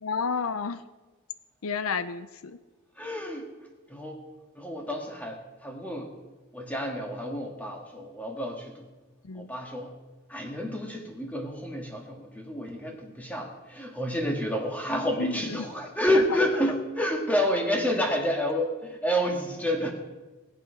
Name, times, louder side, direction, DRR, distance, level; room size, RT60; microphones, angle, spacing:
voice 1, 0.0-0.8 1.6-2.6 9.3-9.5 15.2-15.7 16.1-16.2, left 5 dB, 80° left, 13 dB, 0.6 m, -31 dB
voice 2, 3.0-3.4 3.9-4.2 4.6-6.1 6.5-8.8 9.3-9.9 10.3-19.9, equal, 5° left, 1 dB, 1.8 m, -29 dB
19.5 x 7.4 x 5.7 m, 1.2 s
head